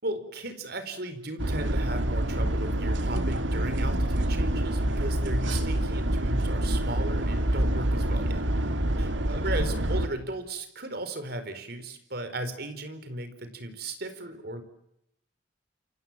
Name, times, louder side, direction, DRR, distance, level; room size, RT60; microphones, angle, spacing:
voice 1, 0.0-8.4 9.0-14.6, right 1 dB, 55° right, 9 dB, 4.5 m, -36 dB
sound 1, 1.4-10.1, right 1 dB, 85° right, 2.2 m, -26 dB
28.5 x 26.5 x 7.5 m, 0.81 s
head